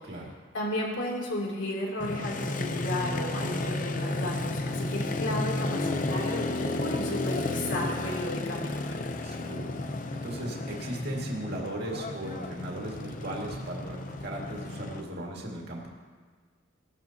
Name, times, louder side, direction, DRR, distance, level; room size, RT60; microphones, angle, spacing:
voice 1, 0.0-0.4 9.2-15.9, right 1 dB, 55° right, -2 dB, 2.2 m, -37 dB
voice 2, 0.5-8.8, left 1 dB, 70° left, -3 dB, 3.0 m, -33 dB
Motorcycle, 2.0-15.0, left 2 dB, 40° left, 0.7 m, -32 dB
18.0 x 12.5 x 2.9 m, 1.5 s
head